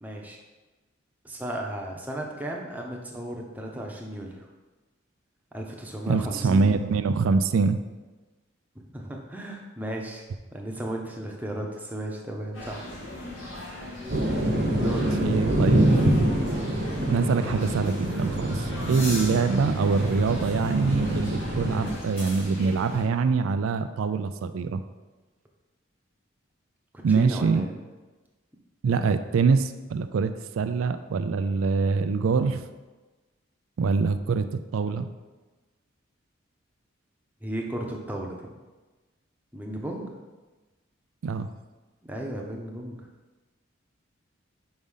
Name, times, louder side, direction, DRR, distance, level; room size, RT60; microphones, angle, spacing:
voice 1, 0.0-0.4 1.2-4.5 5.5-6.8 8.9-10.2 10.5-12.9 13.5-13.6 14.8-15.1 27.1-27.7 37.4-38.4 39.5-40.1 42.1-43.0, right 1 dB, 10° right, -1 dB, 0.8 m, -34 dB
voice 2, 6.1-7.8 15.2-16.0 17.1-24.8 27.0-27.7 28.8-32.6 33.8-35.1 41.2-41.5, right 4 dB, 90° right, 10 dB, 0.4 m, -24 dB
sound 1, 12.5-23.0, left 1 dB, 80° left, 2.3 m, -38 dB
sound 2, 14.1-21.9, right 1 dB, 55° right, 0.9 m, -26 dB
5.3 x 4.9 x 5.5 m, 1.2 s
head